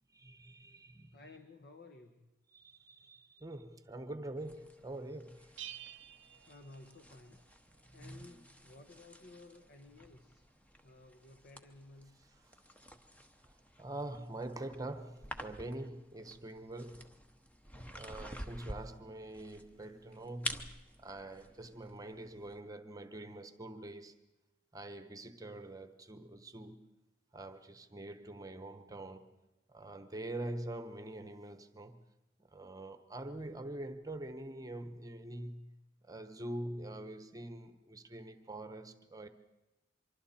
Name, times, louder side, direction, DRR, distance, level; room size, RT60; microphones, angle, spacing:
voice 1, 0.1-1.2 2.5-5.5 7.9-8.4 13.4-17.1 17.9-20.7 21.0-24.2 24.7-26.9 27.3-29.3 29.7-32.0 32.4-35.7 36.0-39.3, right 1 dB, 20° right, 1.0 m, -45 dB
voice 2, 1.1-2.3 6.5-7.4 7.9-10.5 10.8-12.3, left 2 dB, 55° left, 1.2 m, -56 dB
sound 1, 4.4-22.6, equal, 5° left, 0.9 m, -50 dB
Bell, 5.6-7.4, right 12 dB, 70° right, 0.8 m, -50 dB
25.0 x 24.0 x 4.3 m
head